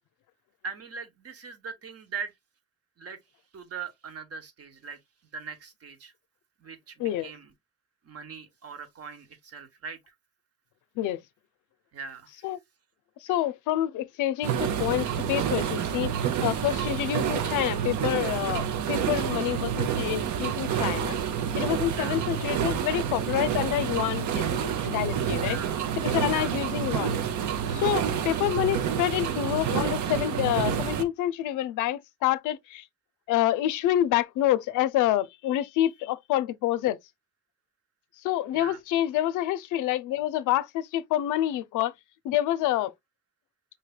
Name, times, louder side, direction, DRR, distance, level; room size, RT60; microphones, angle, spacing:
voice 1, 0.6-2.3 3.0-3.2 3.5-5.0 5.3-6.1 6.6-7.5 8.0-10.1 11.9-12.5 21.9-22.2 25.4-25.8 26.3-26.5 38.5-38.8, right 6 dB, 55° right, 1.2 m, -40 dB
voice 2, 7.0-7.3 11.0-11.2 12.4-12.6 13.2-21.2 21.5-25.6 26.0-27.1 27.7-32.8 33.3-37.0 38.2-41.9 42.2-42.9, left 13 dB, 90° left, 0.5 m, -27 dB
sound 1, 14.4-31.0, right 8 dB, 70° right, 0.7 m, -28 dB
5.5 x 3.2 x 2.3 m
cardioid pair, 90°, 30 cm